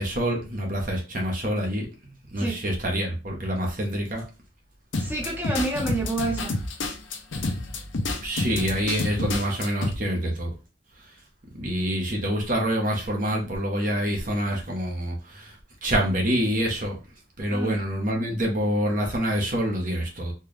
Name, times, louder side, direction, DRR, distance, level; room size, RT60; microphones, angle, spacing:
voice 1, 0.0-1.9 2.3-4.2 8.2-10.5 11.5-15.5 15.8-17.0 17.4-20.3, equal, 45° right, 0.9 m, -26 dB
sound 1, 4.9-9.9, left 2 dB, 85° left, 0.8 m, -29 dB
voice 2, 5.0-6.6 17.5-17.8, right 2 dB, 10° right, 0.8 m, -29 dB
4.4 x 2.3 x 3.2 m
head